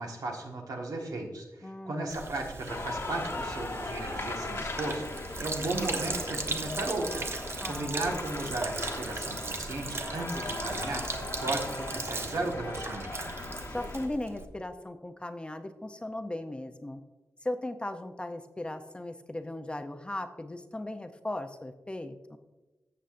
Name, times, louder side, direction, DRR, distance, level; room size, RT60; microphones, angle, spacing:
voice 1, 0.0-7.3 7.6-13.1, right 2 dB, 80° right, 1 dB, 1.5 m, -35 dB
voice 2, 1.6-2.1 7.6-7.9 13.7-17.0 17.4-22.4, left 1 dB, 15° left, 8 dB, 0.5 m, -37 dB
Sink (filling or washing), 2.1-14.4, right 3 dB, 40° right, 0.7 m, -38 dB
sound 1, 2.7-14.1, left 2 dB, 45° left, 1.0 m, -39 dB
14.0 x 6.9 x 2.5 m, 1.1 s
wide cardioid pair, 125°, 6 cm